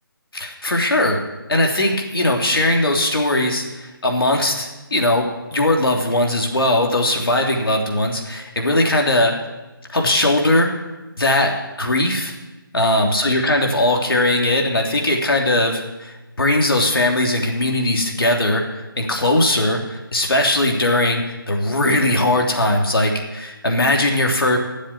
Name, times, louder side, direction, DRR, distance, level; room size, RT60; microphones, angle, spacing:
voice 1, 0.3-1.2 1.5-9.3 9.9-10.7 11.2-12.3 12.7-18.6 19.0-24.6, left 1 dB, 80° left, 1 dB, 3.2 m, -19 dB
13.0 x 7.4 x 9.9 m, 1.1 s
figure-of-eight pair, 160°, 12 cm